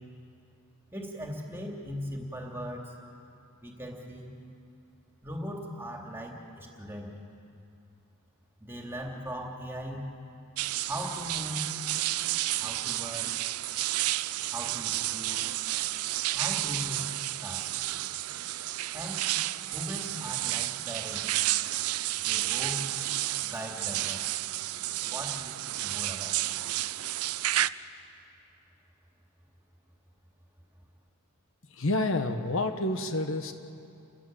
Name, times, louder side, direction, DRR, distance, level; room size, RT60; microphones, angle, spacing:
voice 1, 0.9-2.9 3.6-4.4 5.2-7.1 8.6-10.1 10.8-11.6 12.6-13.3 14.5-15.4 16.3-17.1 17.4-17.7 18.9-19.3 19.7-21.4 22.2-22.9 23.4-24.2 25.1-26.3, equal, 10° right, 0 dB, 2.9 m, -39 dB
sound 1, 10.6-27.7, right 15 dB, 85° right, 0.5 m, -31 dB
voice 2, 31.7-33.5, left 2 dB, 65° left, 7 dB, 1.3 m, -29 dB
29.5 x 16.0 x 7.8 m, 2.7 s
head